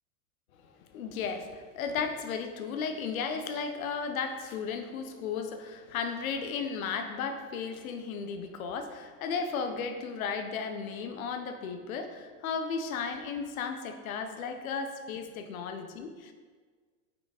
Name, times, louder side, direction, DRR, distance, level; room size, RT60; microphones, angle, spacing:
voice 1, 0.8-16.3, left 5 dB, 85° left, 7 dB, 0.9 m, -35 dB
5.7 x 4.9 x 4.9 m, 1.5 s
supercardioid pair, 140°, 40 cm